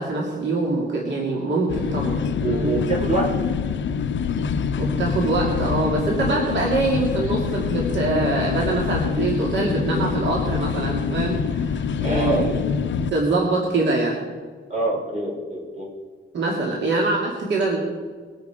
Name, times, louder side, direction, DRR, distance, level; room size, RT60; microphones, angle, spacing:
voice 1, 0.0-2.7 4.8-12.4 13.0-14.2 16.3-17.8, right 2 dB, 65° right, -2 dB, 2.4 m, -24 dB
sound 1, 1.7-13.1, left 6 dB, 70° left, 0.6 m, -25 dB
voice 2, 2.4-3.3 12.0-12.5 14.7-15.9, right 2 dB, 35° right, -3 dB, 4.8 m, -25 dB
22.0 x 8.7 x 5.0 m, 1.5 s
wide cardioid pair, 175°, 20 cm